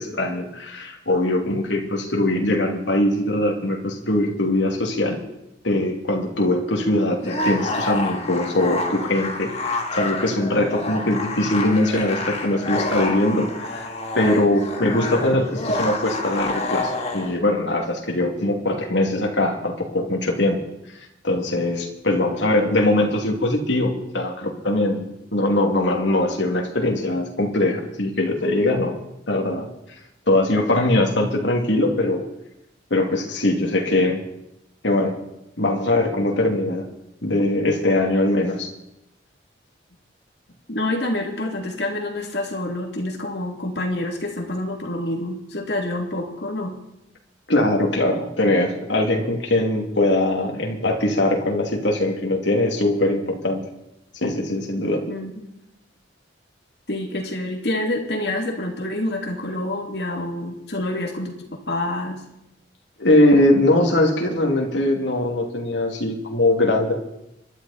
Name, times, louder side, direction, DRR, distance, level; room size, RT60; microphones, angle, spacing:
voice 1, 0.0-5.2 5.6-13.9 14.1-20.6 21.2-25.1 25.3-29.0 29.3-29.7 30.3-32.3 32.9-34.2 34.8-35.2 35.6-36.9 37.2-38.7 47.5-53.6 54.2-55.1 63.0-66.9, left 1 dB, 80° left, 1 dB, 2.8 m, -21 dB
sound 1, 7.2-17.4, left 2 dB, 35° left, 1.9 m, -28 dB
voice 2, 40.7-46.7 55.0-55.5 56.9-62.2, left 1 dB, 65° left, 2 dB, 2.9 m, -27 dB
25.5 x 12.0 x 4.3 m, 0.86 s
head